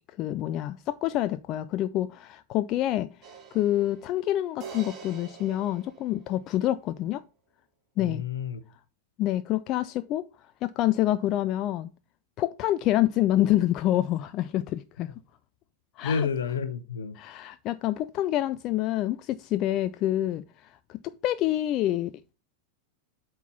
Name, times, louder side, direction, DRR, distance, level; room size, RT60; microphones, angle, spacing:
voice 1, 0.2-3.1 3.5-7.2 8.0-8.2 9.2-10.2 10.6-11.9 12.4-15.1 16.0-16.3 17.2-22.3, left 13 dB, 35° left, 0.3 m, -27 dB
sound 1, 3.2-6.6, right 6 dB, 35° right, 1.9 m, -46 dB
voice 2, 8.0-8.6 16.0-17.2, left 6 dB, 65° left, 1.0 m, -30 dB
8.1 x 4.4 x 5.4 m
figure-of-eight pair, 90°, 0 cm